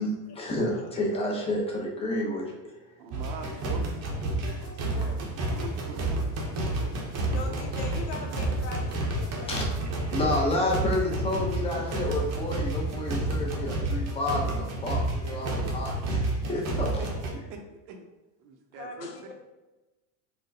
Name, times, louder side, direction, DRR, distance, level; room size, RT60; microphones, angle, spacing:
voice 1, 0.0-2.7 9.5-9.6 10.1-17.0, left 1 dB, 15° left, -2 dB, 0.6 m, -30 dB
voice 2, 0.6-0.9 4.6-5.3 7.2-9.5 18.7-19.3, left 4 dB, 80° left, 1 dB, 0.9 m, -41 dB
voice 3, 3.0-3.9 5.2-5.3 5.6-6.9 7.5-7.6 15.5-15.6 16.5-16.6 17.0-17.1 17.5-17.6 17.9-18.1 18.4-19.3, right 4 dB, 70° right, 4 dB, 0.7 m, -43 dB
sound 1, 3.1-17.3, right 2 dB, 35° right, 0.7 m, -30 dB
4.2 x 2.2 x 2.6 m, 1.1 s
supercardioid pair, 130°, 47 cm